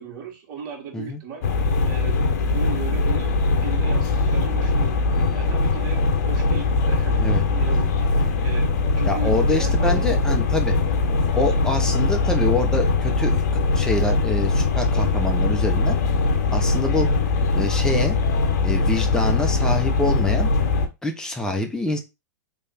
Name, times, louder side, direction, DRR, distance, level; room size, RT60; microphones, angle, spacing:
voice 1, 0.0-1.5 1.9-5.0 5.3-10.3, right 6 dB, 45° right, 1.7 m, -37 dB
sound 1, 1.4-20.9, left 3 dB, 60° left, 0.9 m, -21 dB
voice 2, 9.1-10.8 11.3-16.0 16.5-17.1 17.5-18.2 18.6-20.5 21.0-22.0, left 2 dB, 5° left, 0.9 m, -25 dB
3.6 x 3.3 x 4.2 m
hypercardioid pair, 110°, 10 cm